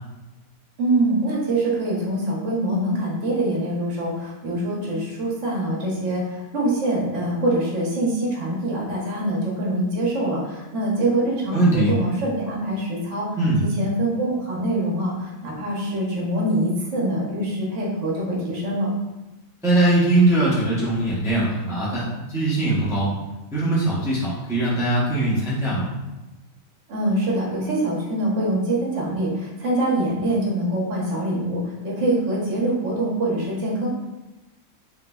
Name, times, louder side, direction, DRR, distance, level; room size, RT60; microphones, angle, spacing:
voice 1, 0.8-18.9 26.9-33.9, right 1 dB, 60° right, -4 dB, 1.1 m, -24 dB
voice 2, 11.5-11.9 13.4-13.6 19.6-23.1 23.5-25.8, right 2 dB, 5° right, -8 dB, 0.4 m, -21 dB
3.3 x 3.0 x 2.3 m, 1.1 s
omnidirectional pair, 1.5 m